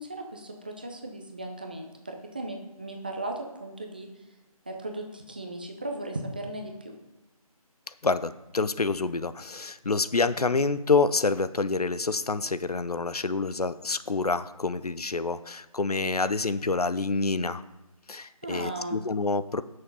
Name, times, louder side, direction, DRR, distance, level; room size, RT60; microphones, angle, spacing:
voice 1, 0.0-4.1 4.7-6.9 18.4-19.0, right 1 dB, 15° right, 3 dB, 0.6 m, -37 dB
voice 2, 8.0-17.6 18.1-19.6, left 3 dB, 85° left, 14 dB, 0.7 m, -27 dB
10.5 x 6.5 x 5.4 m, 1.0 s
figure-of-eight pair, 165°, 19 cm